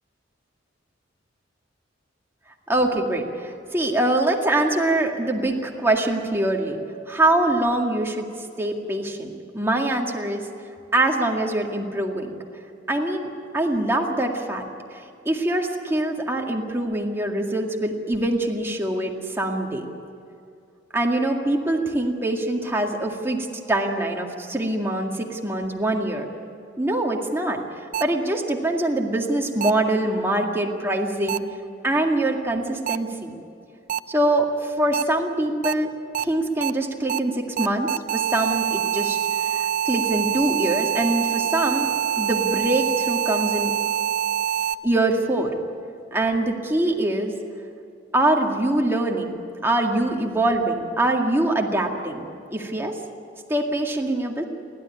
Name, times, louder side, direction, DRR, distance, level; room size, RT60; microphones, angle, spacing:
voice 1, 2.7-6.8 7.1-8.2 8.6-10.5 10.9-12.3 12.9-13.3 13.5-14.6 14.9-19.9 20.9-26.3 26.8-27.6 28.0-31.4 31.8-33.3 34.1-35.9 36.2-41.9 42.2-43.7 44.8-45.5 46.1-47.3 48.1-49.4 49.6-52.3 52.5-53.0 53.5-54.4, right 1 dB, 15° right, 1 dB, 2.1 m, -24 dB
sound 1, 27.9-28.0 29.6-29.7 31.3-31.4 32.9-33.0 33.9-34.0 34.9-35.0 35.6-35.7 36.1-36.2 36.6-36.7 37.1-37.2 37.6-44.7, right 9 dB, 45° right, 0.5 m, -25 dB
30.0 x 12.5 x 9.9 m, 2.6 s
head